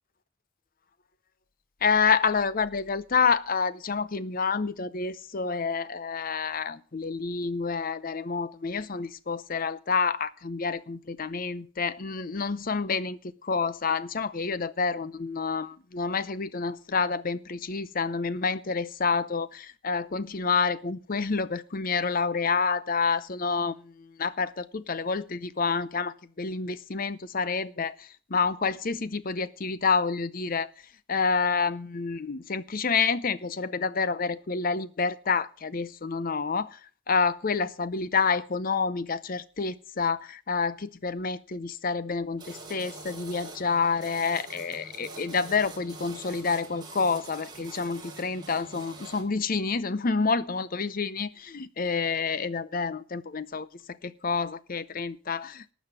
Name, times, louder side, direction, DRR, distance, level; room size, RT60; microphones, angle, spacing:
voice 1, 1.8-27.9 28.3-30.7 31.1-36.8 37.1-53.7 54.0-55.7, left 5 dB, 45° left, 0.6 m, -28 dB
sound 1, 42.4-49.2, right 2 dB, 20° right, 2.6 m, -45 dB
12.5 x 7.2 x 7.1 m
head